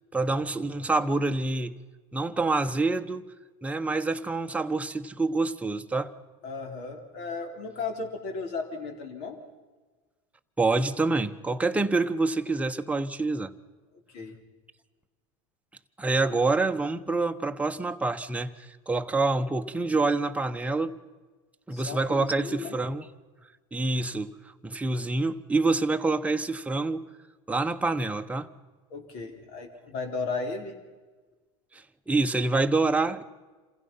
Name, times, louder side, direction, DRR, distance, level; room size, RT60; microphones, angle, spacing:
voice 1, 0.1-1.7 2.1-3.2 3.6-6.1 10.6-13.5 16.0-20.9 21.7-23.1 23.7-24.3 24.6-27.0 27.5-28.5 32.1-33.2, right 3 dB, 10° right, 1.1 m, -26 dB
voice 2, 6.4-9.4 14.1-14.3 21.7-22.8 28.9-30.7, left 4 dB, 60° left, 4.3 m, -35 dB
27.5 x 16.0 x 5.8 m
supercardioid pair, 110°, 16 cm